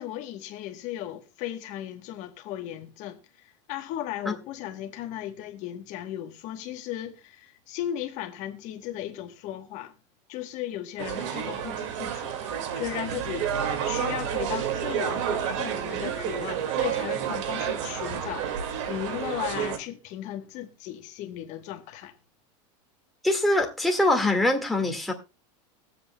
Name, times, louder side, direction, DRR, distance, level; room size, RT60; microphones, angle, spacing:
voice 1, 0.0-9.9 10.3-13.5 13.8-18.6 18.9-22.1, left 12 dB, 50° left, 1.2 m, -36 dB
sound 1, 11.0-19.8, right 9 dB, 70° right, 2.1 m, -30 dB
voice 2, 23.2-25.1, left 1 dB, ahead, 1.8 m, -23 dB
22.5 x 7.9 x 2.2 m
supercardioid pair, 140°, 16 cm